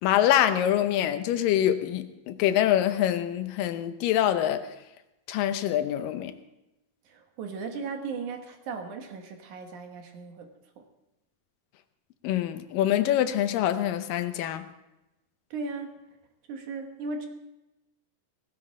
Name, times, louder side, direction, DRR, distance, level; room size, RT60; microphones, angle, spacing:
voice 1, 0.0-4.7 5.3-6.3 12.2-14.7, left 11 dB, 85° left, 10 dB, 2.5 m, -25 dB
voice 2, 7.1-10.5 15.5-16.0 16.5-17.3, right 4 dB, 65° right, 4 dB, 2.7 m, -36 dB
17.0 x 15.5 x 3.7 m, 0.94 s
omnidirectional pair, 3.9 m